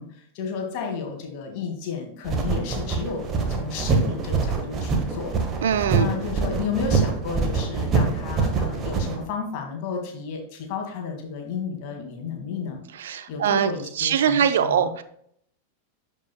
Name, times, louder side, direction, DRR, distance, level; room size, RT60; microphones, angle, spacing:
voice 1, 0.0-5.4 5.9-12.8 13.3-14.9, left 5 dB, 45° left, 3 dB, 2.0 m, -32 dB
sound 1, 2.3-9.2, right 4 dB, 30° right, 1.4 m, -25 dB
voice 2, 5.6-6.1 12.9-13.7 14.0-15.0, right 8 dB, 60° right, 12 dB, 0.5 m, -22 dB
12.0 x 5.4 x 2.2 m, 0.67 s
figure-of-eight pair, 90°, 0 cm